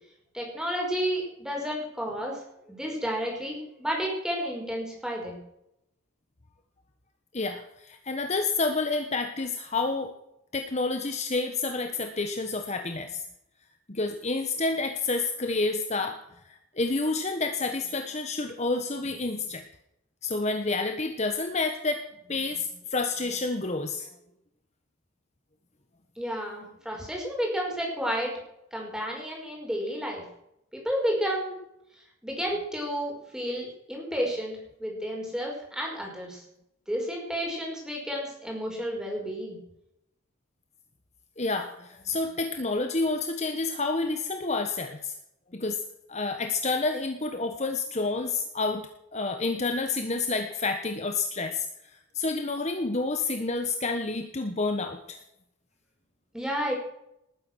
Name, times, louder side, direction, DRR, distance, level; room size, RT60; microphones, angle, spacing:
voice 1, 0.3-2.4 2.7-5.4 26.2-28.3 28.7-30.2 30.7-31.6 32.2-36.4 36.9-39.6 56.3-56.8, equal, 5° right, -1 dB, 5.4 m, -31 dB
voice 2, 7.3-10.1 10.5-13.2 13.9-16.2 16.5-19.6 20.2-22.0 22.3-24.1 41.4-45.1 45.5-45.8 46.1-51.7 52.1-55.2, left 3 dB, 35° left, 6 dB, 1.2 m, -29 dB
19.5 x 9.9 x 6.3 m, 0.80 s
head